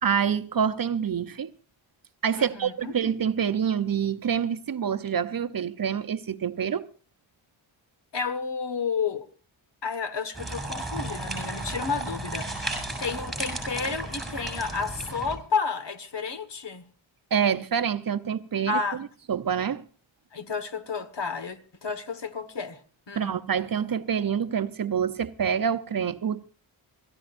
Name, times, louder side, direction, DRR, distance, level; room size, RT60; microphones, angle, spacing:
voice 1, 0.0-1.5 2.2-6.9 17.3-19.8 23.1-26.4, right 7 dB, 45° right, 0.7 m, -27 dB
voice 2, 2.3-2.9 8.1-9.3 9.8-16.8 18.7-19.0 20.3-22.8 23.1-23.4, left 5 dB, 60° left, 1.6 m, -31 dB
sound 1, 10.3-15.4, right 2 dB, ahead, 7.3 m, -34 dB
27.5 x 14.5 x 2.6 m
wide cardioid pair, 115°, 48 cm